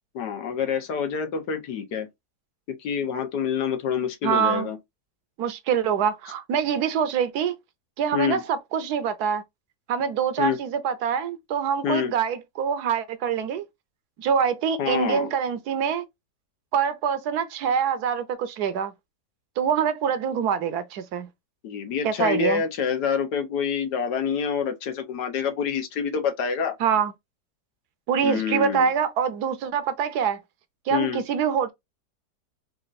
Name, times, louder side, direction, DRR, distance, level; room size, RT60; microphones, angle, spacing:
voice 1, 0.1-2.1 2.7-4.8 8.1-8.4 10.4-10.6 11.8-12.1 14.8-15.3 21.6-26.8 28.2-28.9 30.9-31.2, left 7 dB, 80° left, 1.5 m, -27 dB
voice 2, 4.2-4.7 5.4-7.5 8.0-9.4 9.9-13.6 14.2-16.0 16.7-18.9 19.6-21.3 22.0-22.6 26.8-27.1 28.1-30.4 30.9-31.7, right 7 dB, 75° right, 1.2 m, -25 dB
4.2 x 2.5 x 4.0 m
omnidirectional pair, 1.8 m